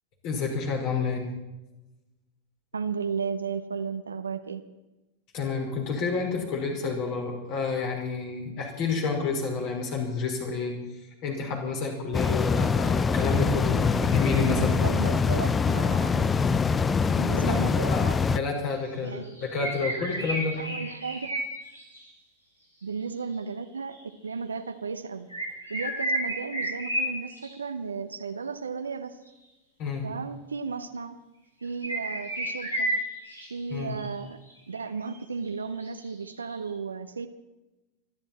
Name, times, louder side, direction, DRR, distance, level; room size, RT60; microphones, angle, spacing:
voice 1, 0.2-1.2 5.3-10.7 11.2-14.8 17.4-20.5 29.8-30.1 33.7-34.0, left 4 dB, 45° left, 1 dB, 5.4 m, -29 dB
voice 2, 2.7-4.6 14.3-16.3 17.1-18.2 19.0-19.3 20.6-21.4 22.8-24.0 24.2-25.3 25.7-29.2 30.0-31.2 31.6-32.9 33.5-34.4 34.7-37.3, right 5 dB, 75° right, 8 dB, 1.0 m, -34 dB
sound 1, 12.1-18.4, left 5 dB, 15° left, 0.6 m, -24 dB
sound 2, 18.7-18.9 19.2-22.1 23.9-24.0 25.3-27.5 31.6-33.5 33.9-34.1 34.5-34.6 34.8-34.9 35.1-35.2 35.8-36.5, right 1 dB, 85° left, 6.6 m, -31 dB
26.0 x 12.0 x 4.4 m, 1.0 s
figure-of-eight pair, 90°, 0 cm